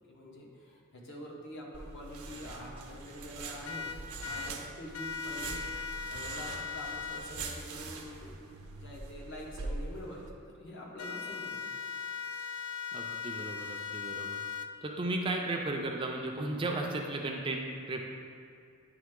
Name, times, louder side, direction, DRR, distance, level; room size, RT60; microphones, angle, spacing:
voice 1, 0.1-3.9 4.2-8.4 8.7-11.6 13.8-13.9, equal, 55° left, -3 dB, 1.1 m, -46 dB
sound 1, 1.7-10.3, right 3 dB, 85° right, 0.6 m, -43 dB
sound 2, 3.6-4.5 4.9-7.2 11.0-14.7, left 6 dB, 75° left, 0.4 m, -39 dB
voice 2, 12.9-14.4 14.8-18.0, right 2 dB, 25° right, 1 dB, 0.4 m, -35 dB
9.4 x 3.2 x 3.6 m, 2.5 s
head